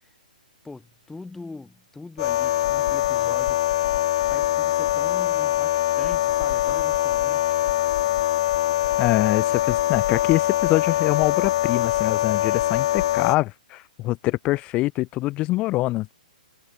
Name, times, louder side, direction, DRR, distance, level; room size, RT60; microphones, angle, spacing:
voice 1, 0.6-3.6 4.3-7.6, left 3 dB, 5° left, 4.1 m, -41 dB
sound 1, 2.2-13.4, left 14 dB, 40° left, 0.9 m, -23 dB
voice 2, 9.0-16.1, left 18 dB, 25° left, 1.1 m, -24 dB
figure-of-eight pair, 120°, 5 cm